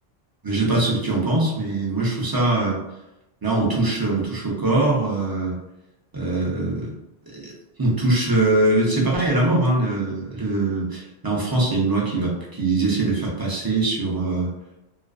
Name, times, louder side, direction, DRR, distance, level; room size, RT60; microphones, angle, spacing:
voice 1, 0.4-2.8 3.4-5.5 6.1-6.9 7.3-7.5 7.8-14.5, right 2 dB, 30° right, -4 dB, 0.4 m, -22 dB
2.4 x 2.4 x 2.3 m, 0.91 s
omnidirectional pair, 1.1 m